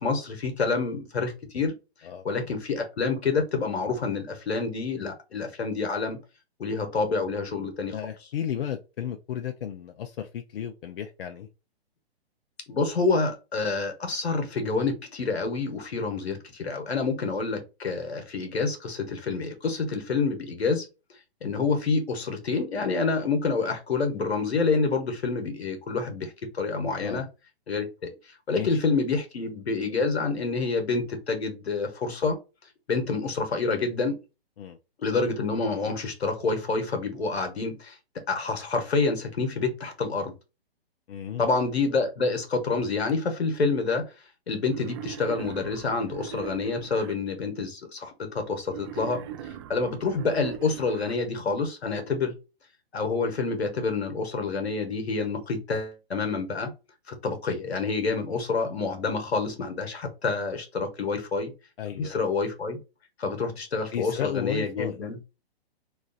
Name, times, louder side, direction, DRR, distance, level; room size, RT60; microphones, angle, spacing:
voice 1, 0.0-1.7 2.2-6.2 6.6-8.0 12.7-20.9 21.4-27.2 27.7-28.1 28.5-32.4 32.9-34.2 35.0-37.9 38.3-40.3 41.4-44.1 44.5-49.2 49.7-52.3 52.9-56.7 57.1-61.5 61.9-62.8 63.2-65.2, left 4 dB, 85° left, 1.3 m, -28 dB
voice 2, 7.9-11.5 27.0-27.3 28.6-28.8 34.6-34.8 41.1-41.5 61.8-62.3 63.9-65.0, left 9 dB, 60° left, 0.6 m, -33 dB
Wild animals, 44.7-47.1 48.7-51.1, right 10 dB, 25° right, 0.4 m, -40 dB
3.1 x 2.4 x 3.8 m
hypercardioid pair, 135°, 31 cm